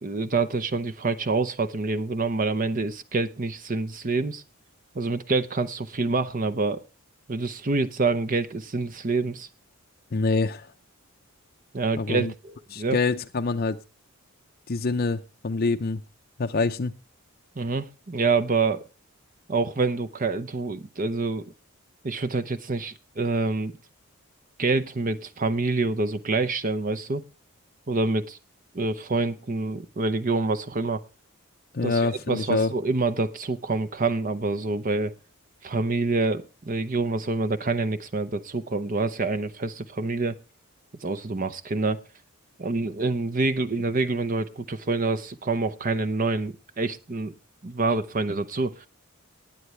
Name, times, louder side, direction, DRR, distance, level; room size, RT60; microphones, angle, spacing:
voice 1, 0.0-4.4 4.9-6.8 7.3-9.5 11.7-13.0 17.6-18.8 19.5-21.5 22.0-23.7 24.6-27.2 27.9-28.4 28.7-31.0 31.8-35.1 35.6-40.4 41.0-42.0 42.6-47.3 47.6-48.9, right 3 dB, 35° right, 0.7 m, -26 dB
voice 2, 10.1-10.7 12.0-12.3 12.7-13.8 14.7-16.0 16.4-16.9 31.7-32.7, left 3 dB, 40° left, 0.6 m, -25 dB
19.0 x 9.4 x 3.2 m
head